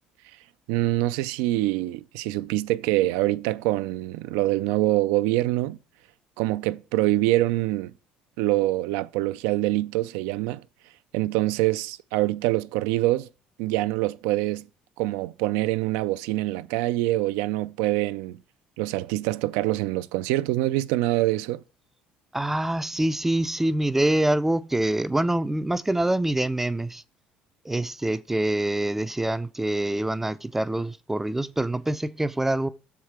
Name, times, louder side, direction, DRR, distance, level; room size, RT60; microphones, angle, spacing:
voice 1, 0.7-5.8 6.4-7.9 8.4-10.6 11.1-13.3 13.6-14.7 15.0-18.4 18.8-21.6, right 17 dB, 90° right, 0.3 m, -25 dB
voice 2, 22.3-27.0 27.7-32.7, right 1 dB, 10° right, 0.4 m, -25 dB
6.4 x 4.8 x 5.9 m
cardioid pair, 105°, 3 cm